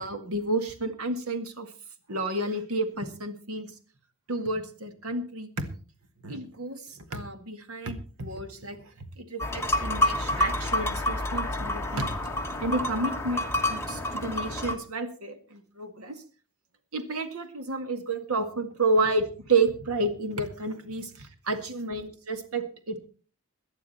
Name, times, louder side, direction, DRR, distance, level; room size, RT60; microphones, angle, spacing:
voice 1, 0.0-1.7 2.1-3.7 4.3-5.5 6.2-12.1 12.6-16.2 16.9-23.0, right 2 dB, 90° right, 8 dB, 2.0 m, -30 dB
sound 1, 9.4-14.8, left 1 dB, 10° left, 1.3 m, -28 dB
18.0 x 11.0 x 4.2 m, 0.38 s
head